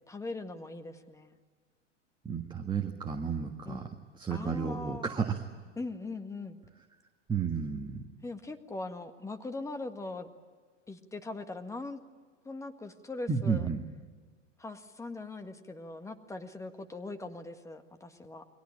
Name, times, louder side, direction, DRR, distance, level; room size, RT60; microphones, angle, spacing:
voice 1, 0.1-1.4 3.7-3.9 4.3-5.1 5.8-6.6 8.2-10.3 10.9-12.0 12.5-13.7 14.6-18.4, left 2 dB, 10° left, 7 dB, 1.7 m, -40 dB
voice 2, 2.3-5.4 7.3-8.0 13.3-13.8, right 6 dB, 10° right, 4 dB, 1.6 m, -32 dB
29.5 x 22.5 x 8.7 m, 1.5 s
figure-of-eight pair, 95°, 37 cm